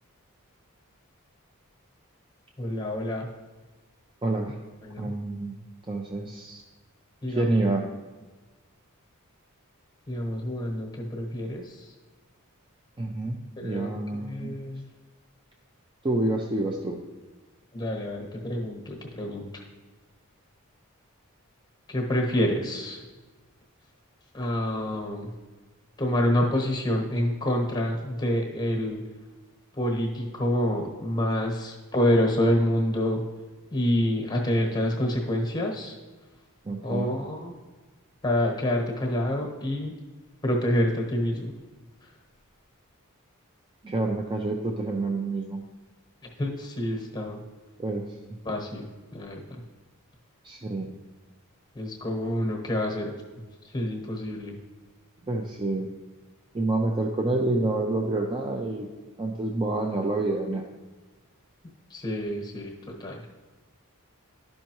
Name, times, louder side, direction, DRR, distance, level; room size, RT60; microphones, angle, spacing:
voice 1, 2.6-3.3 4.8-5.1 7.2-7.6 10.1-11.9 13.6-13.9 14.2-14.9 17.7-19.6 21.9-23.0 24.3-25.3 26.0-29.0 29.8-33.2 33.7-35.9 36.8-37.5 38.2-39.9 40.4-41.5 46.2-47.4 48.4-49.4 51.7-53.1 53.7-54.6 61.9-62.7 63.0-63.2, left 1 dB, 20° left, 1 dB, 1.1 m, -27 dB
voice 2, 4.2-4.6 5.0-5.6 5.9-6.6 7.3-7.8 13.0-14.6 16.0-17.0 36.6-37.1 43.8-45.6 47.8-48.0 50.4-50.9 55.3-55.9 56.5-58.9 59.2-60.6, right 2 dB, 25° right, 1 dB, 0.4 m, -28 dB
11.5 x 5.4 x 3.0 m, 1.3 s
head